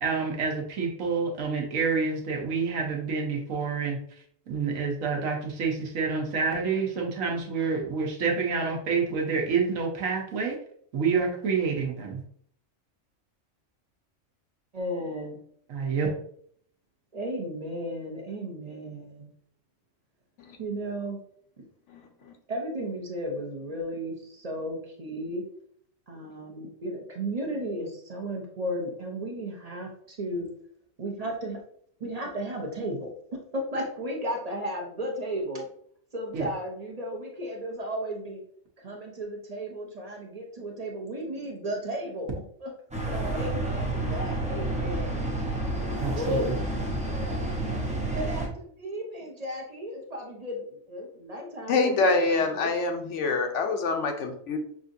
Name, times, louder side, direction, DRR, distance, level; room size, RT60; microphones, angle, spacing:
voice 1, 0.0-4.0 4.5-10.6 10.9-12.2 15.7-16.1 36.3-36.5 46.0-46.5, right 5 dB, 75° right, 0 dB, 1.3 m, -28 dB
voice 2, 14.7-15.4 17.1-19.3 20.6-21.2 22.5-25.4 26.1-30.5 31.0-31.6 32.0-33.1 33.5-35.7 36.1-38.4 38.8-42.3 42.6-42.7 43.1-45.2 46.1-46.5 47.0-47.5 48.1-52.7, equal, 35° right, 1 dB, 0.7 m, -34 dB
voice 3, 21.9-22.3 51.7-54.6, left 3 dB, 70° left, 5 dB, 0.9 m, -26 dB
sound 1, 42.9-48.5, right 1 dB, 10° right, 0.4 m, -30 dB
6.0 x 2.6 x 2.6 m, 0.62 s
omnidirectional pair, 1.4 m